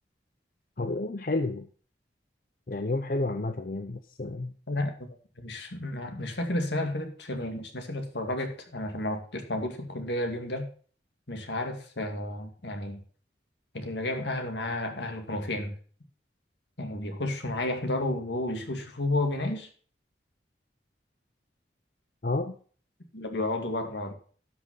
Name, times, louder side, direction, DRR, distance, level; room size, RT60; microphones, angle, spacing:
voice 1, 0.8-1.7 2.7-4.5 22.2-22.5, left 2 dB, 50° left, 8 dB, 0.7 m, -30 dB
voice 2, 4.7-5.1 5.4-10.7 11.3-13.0 13.7-15.8 16.8-19.7 23.1-24.1, left 1 dB, 75° left, 5 dB, 2.2 m, -32 dB
12.0 x 6.1 x 5.4 m, 0.43 s
head